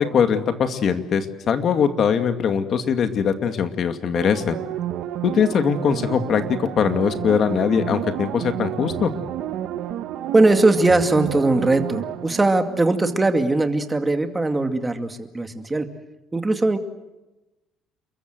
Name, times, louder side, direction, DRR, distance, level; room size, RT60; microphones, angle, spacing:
voice 1, 0.0-4.6 5.2-9.1, left 7 dB, 40° left, 8 dB, 2.3 m, -21 dB
sound 1, 4.2-13.5 13.9-14.0, right 11 dB, 65° right, 1.6 m, -31 dB
voice 2, 10.3-15.9 16.3-16.8, right 2 dB, 10° right, 7 dB, 2.3 m, -20 dB
29.5 x 23.0 x 7.9 m, 1.0 s
cardioid pair, 165°, 0 cm